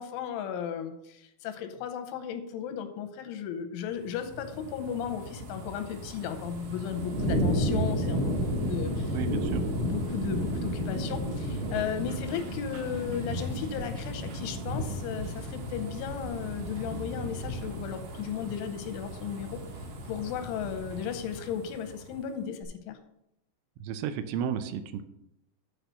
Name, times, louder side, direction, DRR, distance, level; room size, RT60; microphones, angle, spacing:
voice 1, 0.0-9.2 9.6-19.6 20.1-23.0, left 8 dB, 85° left, 7 dB, 3.1 m, -35 dB
sound 1, 4.1-22.2 22.6-22.7, equal, 65° right, 2.2 m, -33 dB
voice 2, 9.1-9.6 23.8-25.0, right 8 dB, 85° right, 10 dB, 3.1 m, -33 dB
8.9 x 4.8 x 6.4 m, 0.82 s
omnidirectional pair, 5.6 m